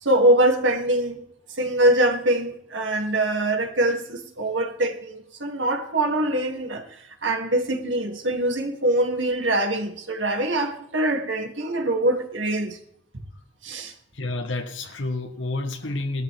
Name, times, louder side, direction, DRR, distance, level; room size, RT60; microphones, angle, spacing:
voice 1, 0.0-1.2 1.6-12.8 13.6-13.9, right 1 dB, 80° right, 2.7 m, -23 dB
voice 2, 14.1-16.2, left 2 dB, 80° left, 1.5 m, -29 dB
18.5 x 13.0 x 3.5 m
head